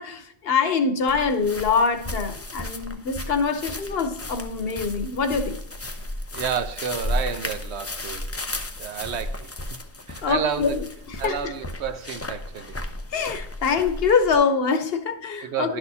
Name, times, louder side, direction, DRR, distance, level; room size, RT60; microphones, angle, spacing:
voice 1, 0.0-5.6 10.2-11.5 13.1-15.8, left 5 dB, 65° left, 1.0 m, -24 dB
sound 1, 1.1-14.4, left 1 dB, 20° left, 0.5 m, -34 dB
voice 2, 6.3-8.3 8.8-10.8 11.2-12.8 15.4-15.8, right 7 dB, 85° right, 1.0 m, -31 dB
11.5 x 6.3 x 2.7 m
omnidirectional pair, 1.1 m